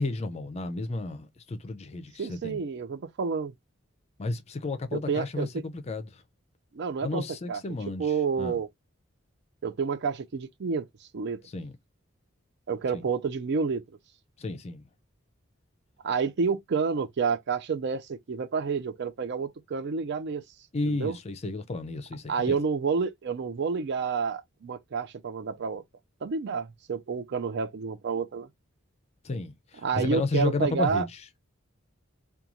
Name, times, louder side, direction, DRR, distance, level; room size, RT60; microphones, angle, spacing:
voice 1, 0.0-2.6 4.2-6.2 7.0-8.6 11.5-11.7 12.9-13.0 14.4-14.8 20.7-22.6 29.2-31.1, left 3 dB, 30° left, 0.4 m, -32 dB
voice 2, 2.2-3.5 4.9-5.6 6.7-7.6 8.0-8.7 9.6-11.4 12.7-13.8 16.0-20.4 20.8-21.2 22.3-25.8 26.2-28.5 29.8-31.1, right 5 dB, 55° right, 0.4 m, -29 dB
3.0 x 2.3 x 2.4 m
head